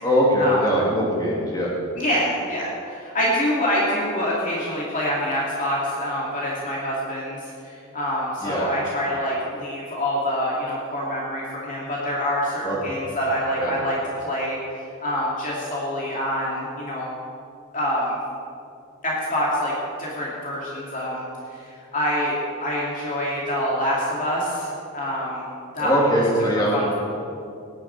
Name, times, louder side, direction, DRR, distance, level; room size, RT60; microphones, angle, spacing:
voice 1, 0.0-1.7 8.4-8.7 12.6-13.0 13.6-13.7 25.8-26.9, equal, 20° left, -5 dB, 2.8 m, -21 dB
voice 2, 2.0-14.0 14.2-14.6 15.0-17.1 17.7-18.2 19.0-19.7 20.0-21.2 21.5-25.4 25.7-26.0 26.4-26.9, equal, 35° left, -5 dB, 2.3 m, -26 dB
17.0 x 11.0 x 4.6 m, 2.5 s
head